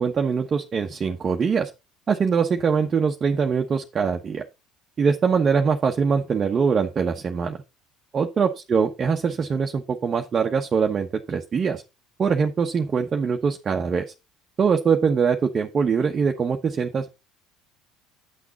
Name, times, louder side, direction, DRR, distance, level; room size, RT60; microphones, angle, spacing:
voice 1, 0.0-1.7 2.1-4.4 5.0-7.6 8.1-11.8 12.2-14.1 14.6-17.1, right 6 dB, 40° right, 3 dB, 1.1 m, -23 dB
9.6 x 6.1 x 4.0 m, 0.26 s
hypercardioid pair, 70°, 0 cm